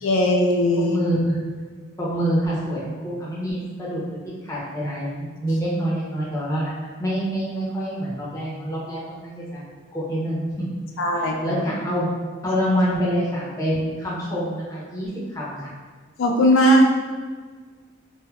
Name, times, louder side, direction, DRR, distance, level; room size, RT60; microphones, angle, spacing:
voice 1, 0.0-1.0 11.0-11.6 16.2-16.8, equal, 75° left, 1 dB, 0.3 m, -18 dB
voice 2, 0.8-1.4 2.0-9.6 9.9-10.6 11.1-12.1 12.4-15.7, equal, 15° left, -7 dB, 0.5 m, -26 dB
3.4 x 2.0 x 2.2 m, 1.6 s
head